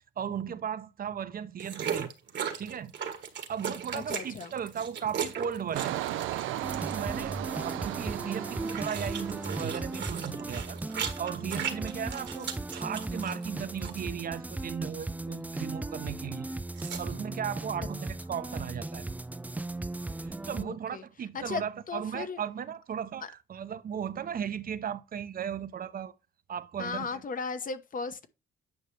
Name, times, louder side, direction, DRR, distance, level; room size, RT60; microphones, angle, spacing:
voice 1, 0.2-2.1 2.6-2.9 3.5-6.1 6.7-10.8 11.2-16.5 17.0-19.1 20.2-26.1 26.5-27.2, right 8 dB, 45° right, 0.8 m, -36 dB
sound 1, 1.6-7.2 8.2-13.5 13.8-14.1 16.8-17.0, right 8 dB, 65° right, 1.5 m, -37 dB
voice 2, 3.9-4.5 20.5-21.0 21.3-22.4 23.2-23.3 26.8-28.3, left 5 dB, 45° left, 1.0 m, -36 dB
Engine, 5.8-10.4 10.8-11.1, right 13 dB, 85° right, 0.6 m, -36 dB
sound 2, 6.6-20.6, right 2 dB, 10° right, 0.3 m, -37 dB
9.5 x 5.5 x 3.3 m
cardioid pair, 90°, 20 cm